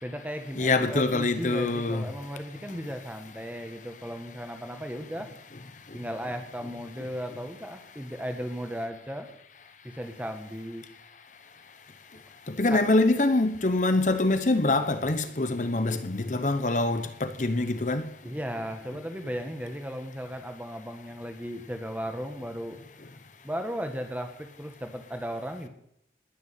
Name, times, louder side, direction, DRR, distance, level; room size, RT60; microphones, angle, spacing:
voice 1, 0.0-5.3 5.9-9.3 9.8-10.8 12.7-12.8 18.2-22.8 23.4-25.7, equal, 10° right, 1.7 m, -36 dB
voice 2, 0.6-2.0 12.5-18.1, left 2 dB, 45° left, 0.9 m, -25 dB
20.0 x 6.9 x 8.5 m
head